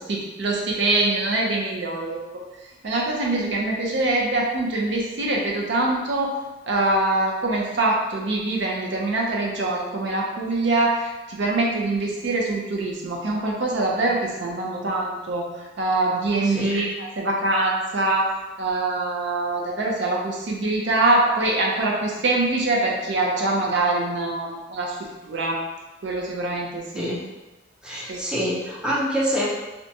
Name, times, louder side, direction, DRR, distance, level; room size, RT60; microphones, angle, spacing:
voice 1, 0.0-2.2 2.8-6.3 6.7-15.4 15.8-18.3 18.6-25.6 26.0-27.1 28.1-28.2, right 2 dB, 65° right, -1 dB, 0.5 m, -24 dB
voice 2, 16.4-16.8 26.9-27.2 27.8-29.5, equal, 5° right, -5 dB, 0.4 m, -26 dB
2.8 x 2.2 x 2.6 m, 1.1 s
head